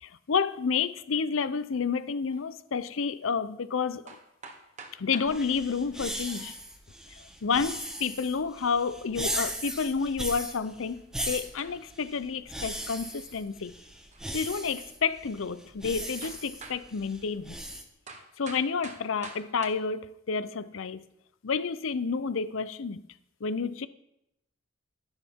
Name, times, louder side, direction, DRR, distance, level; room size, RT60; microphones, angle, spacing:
voice 1, 0.0-4.0 5.0-6.5 7.4-13.7 14.3-17.6 18.4-21.0 21.4-23.0 23.4-23.9, left 5 dB, 70° left, 0.6 m, -30 dB
sound 1, 2.3-2.4 3.7-3.8 4.1-5.4 6.7-7.1 8.6-8.7 8.9-9.0 10.2-10.5 10.9-11.1 11.6-12.0 14.1-14.4 15.0-15.1 16.2-16.9 18.1-19.7, right 4 dB, 35° right, 1.3 m, -47 dB
sound 2, 5.2-17.8, equal, 5° right, 1.1 m, -38 dB
12.0 x 11.5 x 3.6 m
head